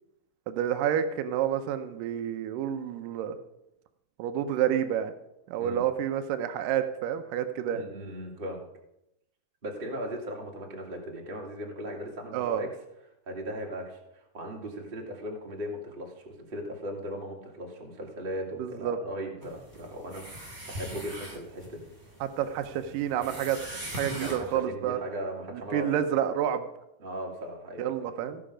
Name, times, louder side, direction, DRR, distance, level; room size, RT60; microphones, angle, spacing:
voice 1, 0.5-3.4 4.2-5.1 5.5-7.8 12.3-12.6 18.6-19.0 22.2-23.6 24.0-25.0 25.5-26.6 27.8-28.4, right 10 dB, 85° right, 9 dB, 1.9 m, -29 dB
voice 2, 7.7-8.7 9.6-12.7 13.2-21.9 24.0-26.0 27.0-27.9, equal, 40° right, -1 dB, 0.7 m, -38 dB
sound 1, 19.4-24.6, right 1 dB, 20° right, 2.4 m, -41 dB
17.0 x 5.7 x 5.0 m, 0.85 s
omnidirectional pair, 4.7 m